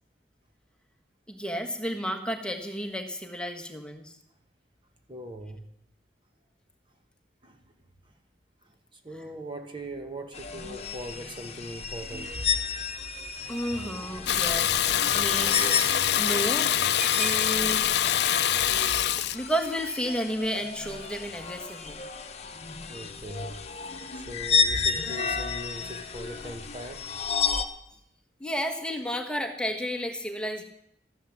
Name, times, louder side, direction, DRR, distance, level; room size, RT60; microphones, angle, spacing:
voice 1, 1.3-4.2 13.5-14.9 15.1-15.9 16.2-16.7 17.1-17.9 19.3-22.0 28.4-30.6, equal, 5° left, 4 dB, 1.4 m, -32 dB
voice 2, 5.1-5.6 7.4-7.7 8.0-8.1 8.6-12.4 22.9-23.5 24.2-27.1, right 1 dB, 30° right, 5 dB, 1.1 m, -40 dB
sound 1, 10.3-27.6, left 5 dB, 35° left, 1.1 m, -32 dB
Water tap faucet / Bathtub (filling or washing), 14.3-19.4, left 10 dB, 65° left, 0.6 m, -24 dB
13.5 x 11.5 x 7.4 m, 0.76 s
head